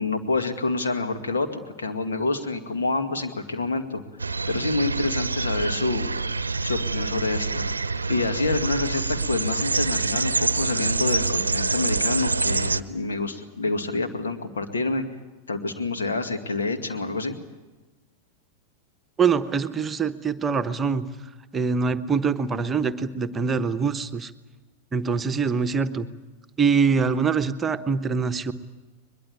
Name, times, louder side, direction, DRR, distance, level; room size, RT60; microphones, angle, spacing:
voice 1, 0.0-4.0 4.5-6.1 6.6-7.6 8.1-15.0 15.5-17.4, left 3 dB, 70° left, 7 dB, 2.2 m, -27 dB
sound 1, 4.2-12.8, right 4 dB, 80° right, 0.7 m, -26 dB
voice 2, 19.2-21.1 21.5-24.3 24.9-26.1 26.6-28.5, right 5 dB, 20° right, 9 dB, 1.1 m, -24 dB
22.5 x 22.0 x 8.7 m, 1.2 s
figure-of-eight pair, 90°, 0 cm